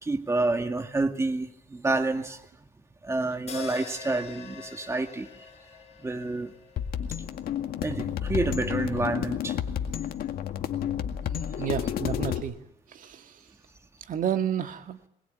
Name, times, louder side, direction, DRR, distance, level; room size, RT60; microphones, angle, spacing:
voice 1, 0.0-2.4 3.0-5.3 6.0-6.5 7.8-9.6, right 2 dB, 15° right, 6 dB, 2.1 m, -28 dB
Zildjian A Custom Hi-Hat Cymbals Open Hit, 3.5-7.8, left 6 dB, 40° left, 6.4 m, -43 dB
sound 1, 6.8-12.4, left 9 dB, 65° left, 2.1 m, -31 dB
voice 2, 11.4-12.5 12.9-13.4 14.1-15.0, right 9 dB, 50° right, 6 dB, 1.9 m, -31 dB
22.0 x 21.0 x 9.3 m, 0.78 s
cardioid pair, 110°, 17 cm